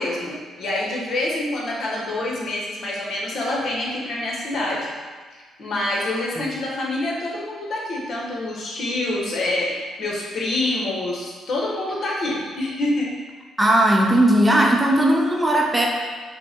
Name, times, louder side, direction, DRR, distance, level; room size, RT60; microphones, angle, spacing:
voice 1, 0.0-4.9 5.3-13.1, left 2 dB, 60° left, -3 dB, 1.1 m, -26 dB
voice 2, 13.6-15.9, right 1 dB, 15° right, -1 dB, 0.6 m, -17 dB
5.3 x 2.2 x 4.4 m, 1.5 s
cardioid pair, 90°, 0 cm